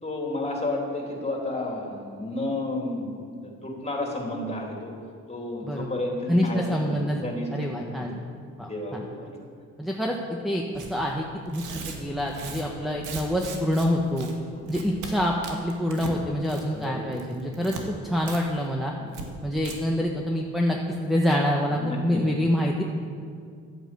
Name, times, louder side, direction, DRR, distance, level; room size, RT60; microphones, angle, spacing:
voice 1, 0.0-4.9 5.3-8.1 8.6-9.3 16.7-17.0 17.8-17.9 19.0-19.2 21.7-22.3, left 2 dB, 20° left, 0 dB, 3.3 m, -32 dB
voice 2, 6.3-7.2 7.5-8.1 8.6-9.0 9.8-10.2 10.4-14.3 14.7-18.9 19.4-22.8, equal, ahead, 0 dB, 1.2 m, -26 dB
Tearing, 10.7-10.9 11.4-13.9 14.2-14.3 14.7-15.1 15.4-16.2 16.4-16.8 17.1-17.8 18.3-18.4 18.7-18.8 19.1-19.2 19.6-19.7, right 5 dB, 85° right, 1.9 m, -38 dB
11.5 x 9.0 x 7.8 m, 2.2 s
cardioid pair, 90°, 30 cm